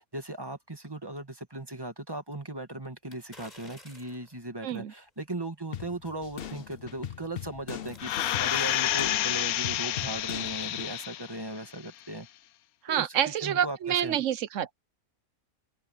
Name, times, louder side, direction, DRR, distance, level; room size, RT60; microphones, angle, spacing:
voice 1, 0.0-8.1 8.4-12.3 12.9-14.2, right 1 dB, 15° right, 2.1 m, -38 dB
sound 1, 3.1-4.3 4.9-5.0 6.6-7.0 7.4-8.9 9.3-9.4, left 1 dB, 25° left, 6.0 m, -51 dB
sound 2, 5.7-10.9, left 8 dB, 50° left, 0.8 m, -41 dB
sound 3, 8.0-11.4 11.8-11.9, left 13 dB, 80° left, 1.1 m, -29 dB
voice 2, 12.8-14.7, right 10 dB, 60° right, 1.1 m, -28 dB
open air
omnidirectional pair, 1.5 m